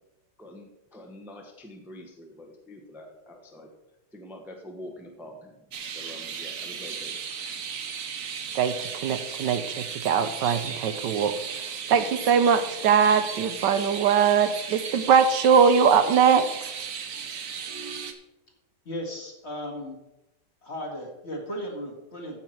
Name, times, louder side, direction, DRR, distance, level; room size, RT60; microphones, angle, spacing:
voice 1, 0.4-3.7 4.1-5.5 5.9-7.1 7.4-7.6, left 1 dB, ahead, 2 dB, 1.0 m, -45 dB
sound 1, 5.7-18.1, right 6 dB, 55° right, 1.2 m, -36 dB
voice 2, 8.5-11.3 11.9-16.5, right 7 dB, 75° right, 10 dB, 1.3 m, -21 dB
voice 3, 18.9-20.0 20.6-22.4, equal, 35° left, 0 dB, 2.2 m, -36 dB
14.5 x 5.9 x 4.5 m, 0.92 s
omnidirectional pair, 2.0 m